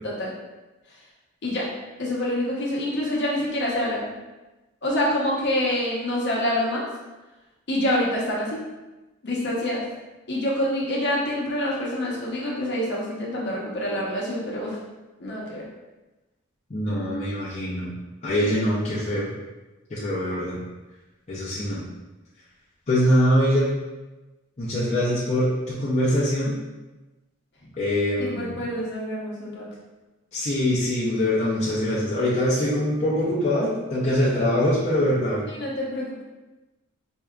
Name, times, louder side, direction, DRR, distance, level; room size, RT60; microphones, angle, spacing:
voice 1, 2.0-4.1 4.8-6.8 7.7-8.6 9.2-9.9 10.3-14.8 15.2-15.7 28.2-29.7 35.5-36.2, left 1 dB, 55° left, -4 dB, 0.9 m, -26 dB
voice 2, 16.7-17.9 18.2-19.3 19.9-20.6 21.3-21.8 22.9-23.7 24.6-26.5 27.8-28.6 30.3-35.4, left 1 dB, 30° left, -8 dB, 0.6 m, -23 dB
4.5 x 2.6 x 2.3 m, 1.1 s
head